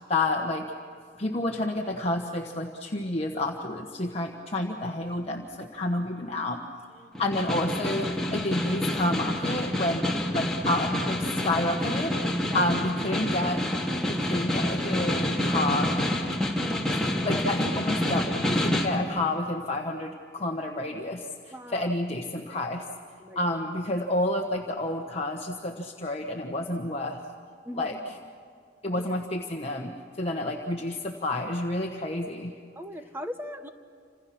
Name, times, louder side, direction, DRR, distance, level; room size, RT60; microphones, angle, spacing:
voice 1, 0.1-0.7 1.2-6.6 7.2-10.1 10.3-12.2 12.5-13.6 14.1-15.9 17.2-22.8 23.3-27.2 27.7-28.1 28.8-32.5, left 1 dB, 35° left, 1 dB, 1.4 m, -29 dB
voice 2, 7.0-7.3 12.4-12.7 21.5-21.9 23.2-23.6 27.6-28.0 28.8-29.1 30.3-30.4 32.7-33.7, equal, 15° right, 7 dB, 1.2 m, -40 dB
Snare drum, 7.1-19.0, left 1 dB, 5° left, 2.4 m, -28 dB
28.5 x 27.0 x 6.1 m, 2.2 s
head